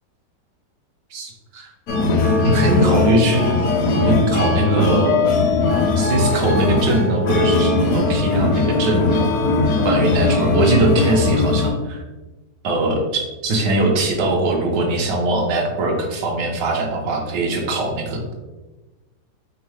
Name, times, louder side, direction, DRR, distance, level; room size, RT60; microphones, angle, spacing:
voice 1, 1.1-1.7 2.4-3.5 3.9-5.1 6.0-9.3 9.8-12.0 12.6-18.2, right 2 dB, 80° right, 1 dB, 1.4 m, -21 dB
sound 1, 1.9-11.7, left 3 dB, 70° left, 0.9 m, -19 dB
3.6 x 3.5 x 3.2 m, 1.1 s
omnidirectional pair, 1.9 m